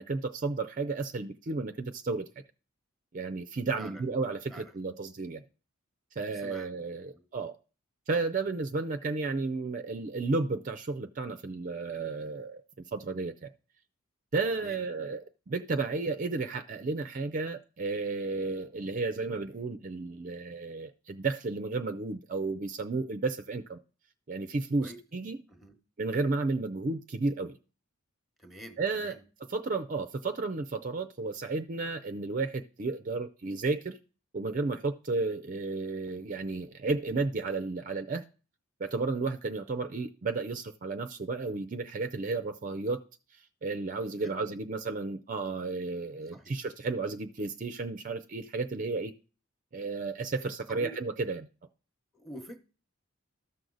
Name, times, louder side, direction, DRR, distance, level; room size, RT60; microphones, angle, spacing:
voice 1, 0.0-2.3 3.1-5.4 6.2-7.6 8.1-12.6 12.9-13.5 14.3-23.8 24.3-25.4 26.0-27.6 28.8-29.1 29.5-34.0 34.3-38.2 38.8-43.0 43.3-49.1 49.7-51.5, right 3 dB, 40° right, 0.5 m, -33 dB
voice 2, 6.3-6.7 7.1-7.2 14.6-14.8 24.8-25.0 25.5-25.8 28.4-29.2 44.2-44.6 46.3-46.6 50.7-51.0 52.1-52.6, right 1 dB, ahead, 1.0 m, -47 dB
13.0 x 6.3 x 3.9 m
head